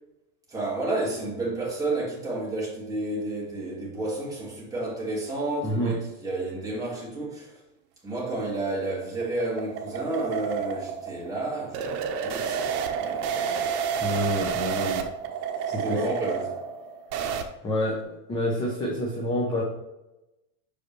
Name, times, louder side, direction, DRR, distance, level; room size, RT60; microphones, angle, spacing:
voice 1, 0.5-7.6 8.0-13.6 15.7-16.6, right 2 dB, 5° right, 1.9 m, -31 dB
voice 2, 5.6-6.0 14.0-15.1 15.7-16.0 17.6-19.6, equal, 10° left, 0.4 m, -28 dB
sound 1, 8.5-17.4, right 7 dB, 70° right, 1.0 m, -30 dB
6.2 x 5.1 x 3.0 m
supercardioid pair, 155°, 49 cm